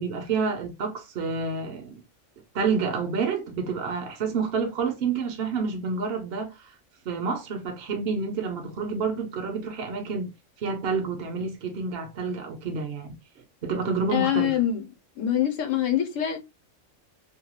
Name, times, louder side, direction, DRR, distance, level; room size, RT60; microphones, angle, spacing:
voice 1, 0.0-2.0 2.5-6.5 7.1-10.3 10.6-13.1 13.6-14.6, right 5 dB, 60° right, 0.8 m, -29 dB
voice 2, 14.1-14.8 15.2-16.4, left 10 dB, 75° left, 1.1 m, -24 dB
2.7 x 2.3 x 2.8 m
omnidirectional pair, 1.3 m